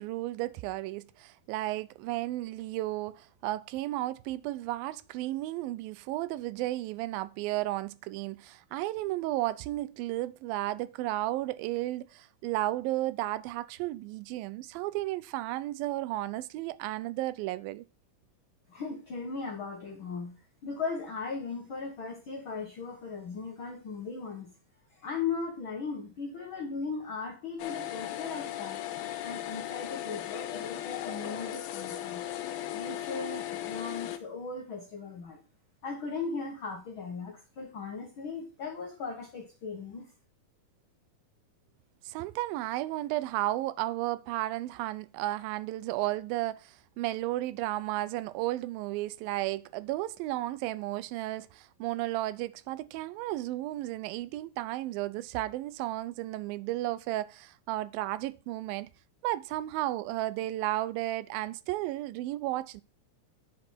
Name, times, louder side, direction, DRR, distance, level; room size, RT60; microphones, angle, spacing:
voice 1, 0.0-17.8 42.1-58.9 59.2-62.8, right 16 dB, 80° right, 2.2 m, -33 dB
voice 2, 18.7-24.5 24.9-28.8 29.2-32.2 32.7-35.4 35.8-40.1, left 5 dB, 65° left, 1.2 m, -38 dB
sound 1, 27.6-34.2, left 12 dB, 85° left, 2.6 m, -37 dB
10.5 x 5.2 x 4.4 m
omnidirectional pair, 4.3 m